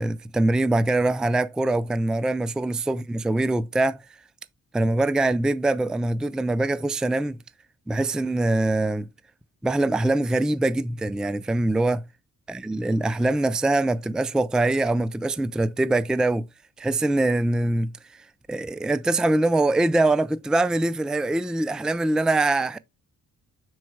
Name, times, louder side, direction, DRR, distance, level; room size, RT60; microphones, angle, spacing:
voice 1, 0.0-4.0 4.7-7.4 7.9-9.1 9.6-12.0 12.5-16.5 16.8-18.2 18.5-22.8, right 2 dB, ahead, 0.4 m, -23 dB
6.1 x 4.7 x 4.5 m
cardioid pair, 100°, 32 cm